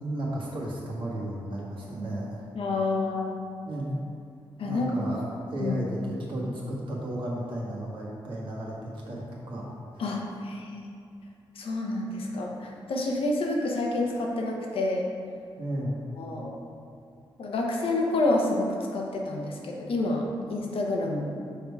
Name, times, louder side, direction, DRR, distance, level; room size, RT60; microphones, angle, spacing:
voice 1, 0.0-2.5 3.6-4.0 4.6-5.2 5.5-9.7 15.6-16.0, right 1 dB, 60° right, -4 dB, 1.4 m, -33 dB
voice 2, 2.5-3.3 4.6-4.9 5.6-5.7 10.0-10.9 11.6-15.1 16.2-16.6 17.4-21.3, left 2 dB, 70° left, 0 dB, 0.9 m, -28 dB
5.7 x 3.7 x 4.6 m, 2.3 s
cardioid pair, 65°, 10 cm